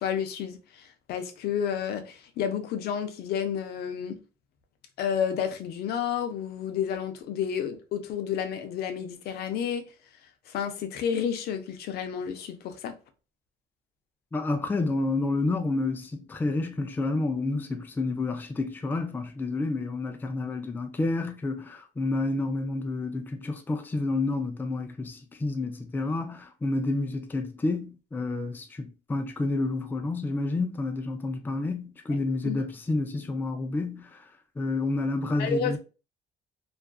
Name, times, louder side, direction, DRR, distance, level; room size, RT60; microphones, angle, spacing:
voice 1, 0.0-4.2 5.0-9.8 10.5-13.0 32.4-32.6 35.3-35.8, left 8 dB, 70° left, 0.5 m, -31 dB
voice 2, 14.3-34.3 34.6-35.8, left 2 dB, 10° left, 0.3 m, -29 dB
2.4 x 2.3 x 2.2 m
cardioid pair, 110°, 17 cm